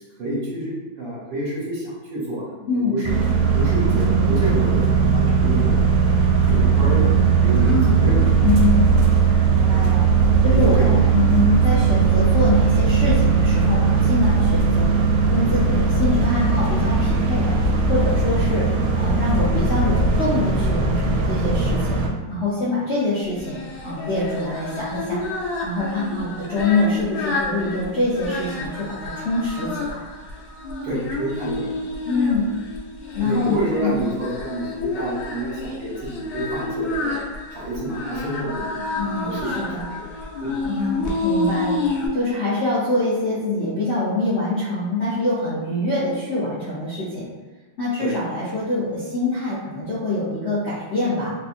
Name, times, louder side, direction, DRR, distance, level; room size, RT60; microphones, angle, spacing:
voice 1, 0.2-3.2 3.5-5.8 6.5-8.2 10.5-11.3 30.8-31.8 33.2-37.2 37.5-40.1 40.4-40.5 48.0-48.2, right 1 dB, 70° right, -6 dB, 1.6 m, -29 dB
voice 2, 2.7-3.0 7.6-8.0 8.4-8.8 9.4-10.0 10.4-14.9 15.3-17.5 17.9-18.6 18.9-22.0 22.3-25.2 25.6-30.1 32.1-32.5 33.1-34.0 38.9-39.8 40.6-41.8 42.1-47.3 47.8-51.3, left 2 dB, 70° left, -10 dB, 0.6 m, -24 dB
sound 1, 3.0-22.1, right 5 dB, 85° right, 1.3 m, -18 dB
Singing, 23.3-42.1, left 2 dB, 90° left, 1.4 m, -29 dB
3.4 x 2.5 x 2.5 m, 1.3 s
omnidirectional pair, 2.1 m